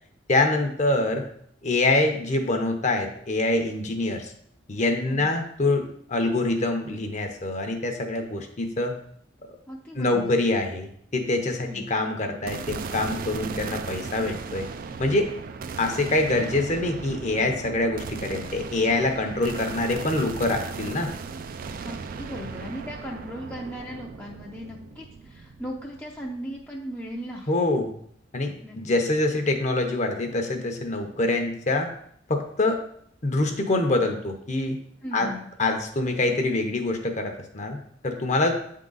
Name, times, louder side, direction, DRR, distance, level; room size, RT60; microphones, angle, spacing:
voice 1, 0.3-1.2 1.6-4.3 4.7-9.0 9.9-14.7 15.0-15.3 15.8-21.1 27.5-27.9 28.3-31.9 32.3-32.8 33.2-34.8 35.1-35.3 35.6-37.8 38.0-38.6, left 2 dB, 40° left, 4 dB, 0.8 m, -25 dB
voice 2, 9.7-10.4 11.7-11.9 21.8-27.5 28.6-28.8 35.0-35.5, equal, 10° left, -3 dB, 0.5 m, -37 dB
sound 1, 12.5-26.8, right 5 dB, 50° right, 0.4 m, -37 dB
8.2 x 3.7 x 3.9 m, 0.65 s
head